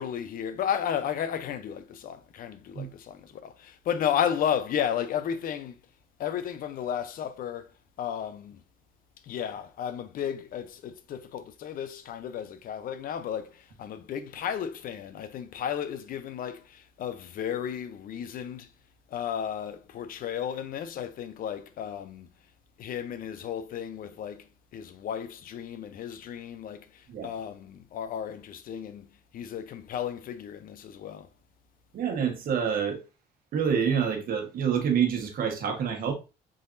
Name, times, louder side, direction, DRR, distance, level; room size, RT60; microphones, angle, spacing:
voice 1, 0.0-5.8 6.2-7.7 8.0-8.6 9.2-18.7 19.1-22.3 22.8-24.5 24.7-29.0 29.3-31.3, left 9 dB, 55° left, 0.6 m, -33 dB
voice 2, 31.9-33.0 33.5-36.1, right 7 dB, 60° right, 1.2 m, -27 dB
4.1 x 3.9 x 2.6 m
cardioid pair, 110°, 17 cm